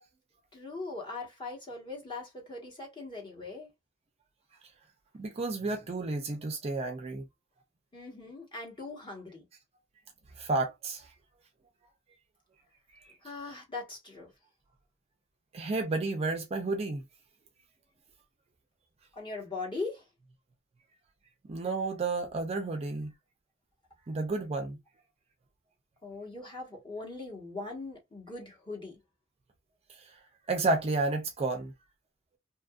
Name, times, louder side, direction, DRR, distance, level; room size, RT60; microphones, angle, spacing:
voice 1, 0.5-3.7 7.9-9.4 13.2-14.3 19.1-20.0 26.0-29.0, left 3 dB, 25° left, 1.1 m, -40 dB
voice 2, 5.2-7.3 10.4-11.1 15.5-17.0 21.5-23.1 24.1-24.8 29.9-30.1 30.5-31.7, right 3 dB, 30° right, 0.4 m, -31 dB
2.8 x 2.5 x 2.3 m
head